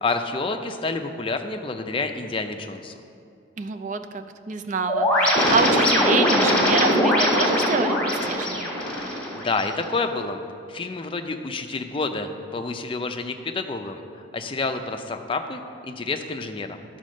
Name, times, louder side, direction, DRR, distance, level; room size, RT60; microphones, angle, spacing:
voice 1, 0.0-2.9 9.3-10.4 10.7-16.8, left 3 dB, 25° left, 6 dB, 0.4 m, -29 dB
voice 2, 3.6-8.7, right 4 dB, 40° right, 8 dB, 0.4 m, -27 dB
sound 1, 4.9-9.9, left 1 dB, 5° left, 1.7 m, -21 dB
10.5 x 4.2 x 6.3 m, 2.4 s
head